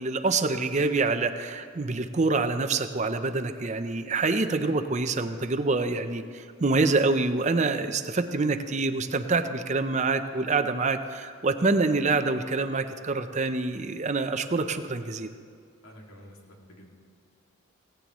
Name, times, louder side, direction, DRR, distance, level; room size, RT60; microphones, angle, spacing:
voice 1, 0.0-15.3, right 3 dB, 35° right, 8 dB, 0.6 m, -26 dB
voice 2, 15.8-16.9, equal, 85° left, 0 dB, 2.3 m, -49 dB
17.0 x 17.0 x 3.1 m, 2.4 s
head